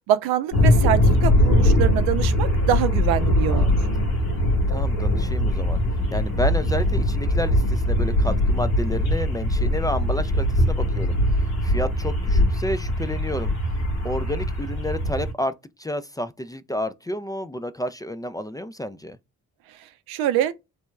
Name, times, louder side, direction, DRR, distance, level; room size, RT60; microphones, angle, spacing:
voice 1, 0.1-3.8 20.1-20.5, right 11 dB, 85° right, 0.5 m, -24 dB
sound 1, 0.5-15.3, left 1 dB, 85° left, 1.7 m, -21 dB
voice 2, 3.5-4.1 4.7-5.8 6.1-13.5 14.0-19.2, left 1 dB, 10° left, 0.4 m, -30 dB
3.3 x 2.8 x 2.2 m
hypercardioid pair, 45°, 37 cm